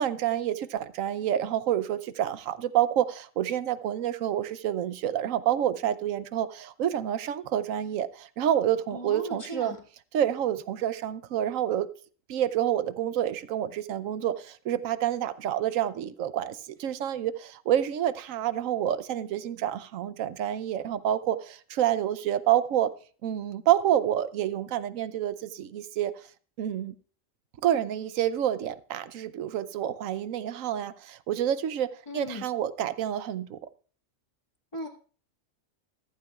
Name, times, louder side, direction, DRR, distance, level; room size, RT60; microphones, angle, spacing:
voice 1, 0.0-9.7 10.1-11.9 12.3-22.9 23.2-26.1 26.6-26.9 27.6-33.6, right 11 dB, 90° right, 1.1 m, -28 dB
voice 2, 8.9-9.8 32.1-32.5 34.7-34.9, left 1 dB, 25° left, 1.8 m, -37 dB
14.5 x 14.5 x 2.4 m
omnidirectional pair, 1.3 m